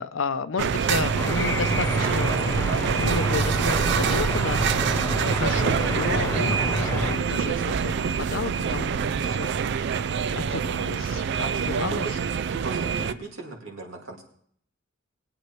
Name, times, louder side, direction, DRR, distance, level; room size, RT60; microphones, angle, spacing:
voice 1, 0.0-8.9 9.2-9.9 10.3-12.1, left 4 dB, 80° left, 12 dB, 0.6 m, -32 dB
sound 1, 0.6-13.1, right 6 dB, 60° right, 0.4 m, -25 dB
sound 2, 1.1-7.2, left 2 dB, 15° left, 0.6 m, -29 dB
voice 2, 11.4-12.2 12.5-14.2, right 3 dB, 80° right, 1 dB, 2.3 m, -37 dB
20.0 x 8.7 x 3.1 m, 0.63 s
head